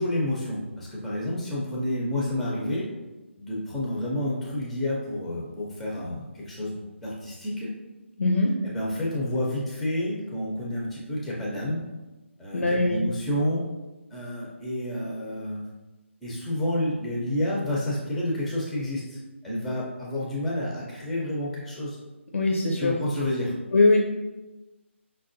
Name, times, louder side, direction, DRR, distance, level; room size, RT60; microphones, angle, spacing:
voice 1, 0.0-2.9 3.4-7.8 8.6-11.8 12.4-13.7 14.1-15.6 16.2-19.2 19.4-22.0 22.8-23.6, left 1 dB, ahead, -5 dB, 0.4 m, -29 dB
voice 2, 8.2-8.6 12.5-13.0 22.3-23.0 23.7-24.0, left 2 dB, 90° left, 1 dB, 0.5 m, -21 dB
5.3 x 2.2 x 2.5 m, 1.1 s
hypercardioid pair, 165°, 7 cm